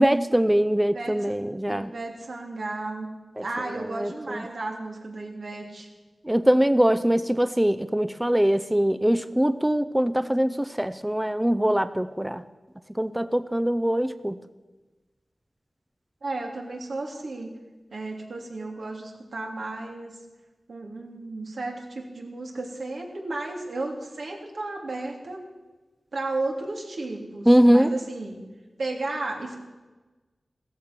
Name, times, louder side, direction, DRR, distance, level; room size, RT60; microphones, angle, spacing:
voice 1, 0.0-1.9 3.4-3.5 3.9-4.4 6.2-12.4 12.9-14.4 27.5-27.9, equal, 10° right, 12 dB, 0.5 m, -22 dB
voice 2, 1.7-3.1 3.4-5.9 16.2-17.6 17.9-20.1 20.7-25.4 26.1-28.4 28.8-29.6, right 2 dB, 80° right, 1 dB, 3.0 m, -33 dB
16.0 x 14.0 x 6.1 m, 1.2 s
wide cardioid pair, 95°, 0 cm